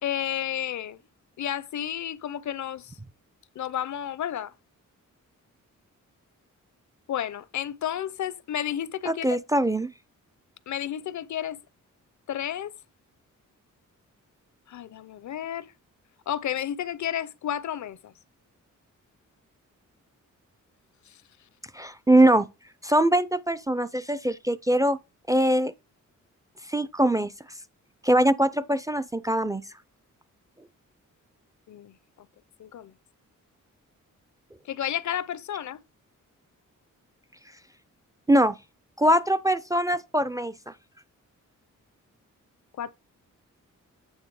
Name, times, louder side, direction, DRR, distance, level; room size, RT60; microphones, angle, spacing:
voice 1, 0.0-1.0 1.4-3.0 3.6-4.5 7.1-9.4 10.7-11.6 12.3-12.7 14.7-15.7 16.3-18.1 21.1-21.2 31.7-31.9 32.6-32.9 34.6-35.8 42.8-42.9, left 10 dB, 65° left, 0.6 m, -31 dB
voice 2, 9.1-9.9 21.7-22.5 22.8-25.0 25.3-25.7 26.7-27.3 28.0-29.6 38.3-38.6 39.0-40.5, right 1 dB, 10° right, 0.4 m, -22 dB
8.9 x 3.4 x 4.7 m
cardioid pair, 90°, 31 cm